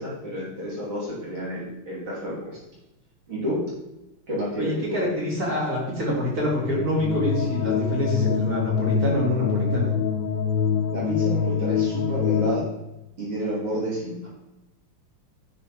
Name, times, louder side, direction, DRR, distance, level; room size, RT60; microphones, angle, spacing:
voice 1, 0.0-2.6 3.3-3.7 4.3-5.1 10.9-12.7 13.2-14.3, equal, 65° right, -8 dB, 4.2 m, -30 dB
voice 2, 4.6-9.9, left 1 dB, 45° right, -4 dB, 2.9 m, -26 dB
sound 1, 6.6-12.6, left 7 dB, 85° left, 1.5 m, -25 dB
9.2 x 4.7 x 4.5 m, 0.95 s
omnidirectional pair, 2.4 m